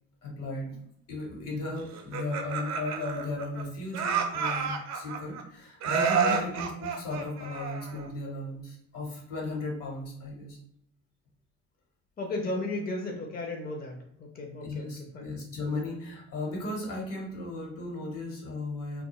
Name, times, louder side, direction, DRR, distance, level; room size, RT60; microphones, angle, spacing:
voice 1, 0.2-0.8 1.1-10.6 14.6-19.0, left 2 dB, 65° left, -2 dB, 1.2 m, -36 dB
Laughter, 1.9-3.6 3.9-5.4 5.8-8.1, right 6 dB, 50° right, 0.5 m, -30 dB
voice 2, 6.1-6.5 12.2-14.9 15.1-15.4, left 2 dB, 25° left, 1 dB, 0.6 m, -35 dB
2.2 x 2.2 x 3.0 m, 0.72 s
supercardioid pair, 60°, 35 cm